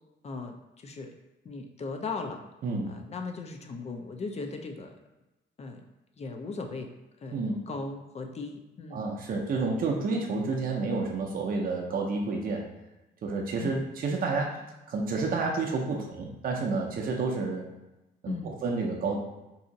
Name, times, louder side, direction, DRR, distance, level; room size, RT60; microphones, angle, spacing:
voice 1, 0.2-0.6 0.8-1.1 1.4-2.4 2.9-5.0 5.6-5.8 6.2-6.9 7.2-7.4 7.7-9.1 13.6-13.8 18.3-18.5, left 3 dB, 35° left, 4 dB, 0.4 m, -37 dB
voice 2, 2.6-3.0 7.3-7.6 8.9-12.7 13.2-14.6 14.9-17.7 18.2-19.2, right 3 dB, 45° right, 0 dB, 0.6 m, -30 dB
2.7 x 2.4 x 3.9 m, 1.0 s
cardioid pair, 90°, 20 cm